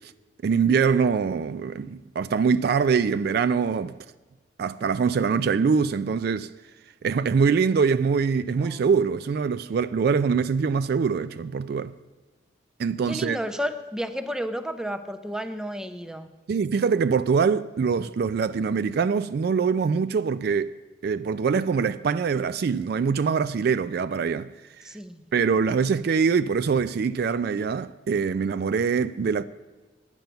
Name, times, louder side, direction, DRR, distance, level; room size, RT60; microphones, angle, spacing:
voice 1, 0.4-3.9 4.6-6.5 7.0-11.9 12.8-13.4 16.5-20.7 21.0-24.5 25.3-29.4, right 5 dB, 55° right, 0.3 m, -23 dB
voice 2, 8.6-8.9 13.1-16.3 24.8-25.2, equal, 5° right, 0.5 m, -32 dB
10.5 x 9.1 x 6.8 m
head